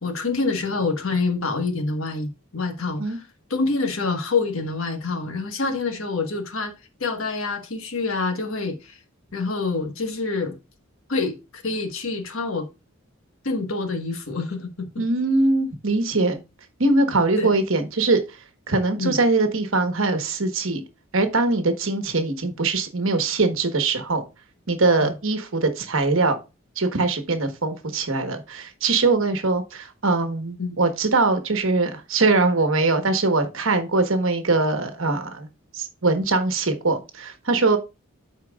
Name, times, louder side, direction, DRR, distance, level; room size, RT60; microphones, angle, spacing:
voice 1, 0.0-6.7 7.0-9.0 9.3-10.5 11.1-12.7 13.4-14.9 17.4-17.5 19.0-19.2 25.0-25.1 30.6-30.8, left 3 dB, 70° left, 1.4 m, -26 dB
voice 2, 15.0-16.4 16.8-18.2 18.7-20.8 21.1-24.2 24.7-26.4 26.8-35.5 35.7-37.8, right 3 dB, 65° right, 1.2 m, -22 dB
13.0 x 4.6 x 2.4 m
head